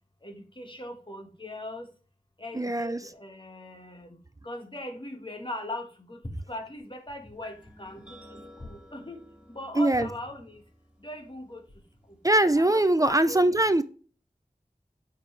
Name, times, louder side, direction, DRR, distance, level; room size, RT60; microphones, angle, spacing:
voice 1, 0.2-1.9 2.4-4.2 4.4-8.2 8.6-9.2 9.5-10.6 11.0-11.6 12.1-12.2 12.5-13.5, left 1 dB, 35° left, 1.6 m, -40 dB
voice 2, 2.5-3.1 9.8-10.1 12.2-13.8, right 1 dB, 25° right, 0.5 m, -22 dB
sound 1, 7.4-13.1, equal, 10° right, 2.4 m, -54 dB
8.9 x 5.5 x 3.2 m
wide cardioid pair, 55°, 15 cm